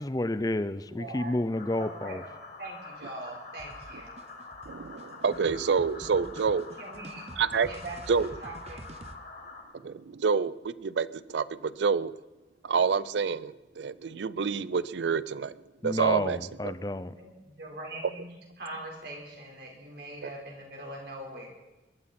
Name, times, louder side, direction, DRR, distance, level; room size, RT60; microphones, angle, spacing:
voice 1, 0.0-2.2 15.8-17.1, left 1 dB, 20° left, 0.5 m, -30 dB
voice 2, 0.9-1.5 1.8-2.3 2.6-4.1 6.8-7.3 7.6-8.8 17.1-18.3 18.6-21.5, right 1 dB, 65° right, 4.4 m, -42 dB
sound 1, 1.5-9.6, left 3 dB, 55° left, 5.3 m, -46 dB
sound 2, 3.6-9.1, right 1 dB, 35° right, 0.8 m, -47 dB
voice 3, 4.7-6.7 7.4-7.7 8.1-8.3 9.8-12.1 12.6-15.5 15.8-16.7, right 5 dB, 80° right, 0.5 m, -28 dB
22.5 x 13.0 x 4.3 m
head